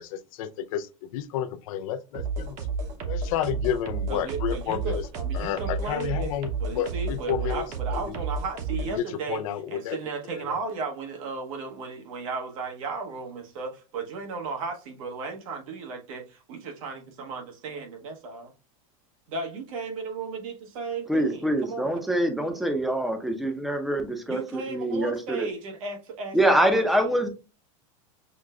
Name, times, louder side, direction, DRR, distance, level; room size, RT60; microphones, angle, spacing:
voice 1, 0.0-2.6 3.1-5.0 5.3-7.7 7.9-8.1 9.0-10.0 10.3-10.6, left 10 dB, 75° left, 0.5 m, -31 dB
sound 1, 2.1-9.0, right 3 dB, 40° right, 0.9 m, -31 dB
voice 2, 4.1-6.3 6.6-9.4 9.7-18.5 19.3-21.9 24.3-26.9, right 4 dB, 70° right, 1.2 m, -35 dB
voice 3, 21.1-25.5 26.3-27.3, right 1 dB, ahead, 0.6 m, -25 dB
6.2 x 2.2 x 2.4 m
supercardioid pair, 145°, 18 cm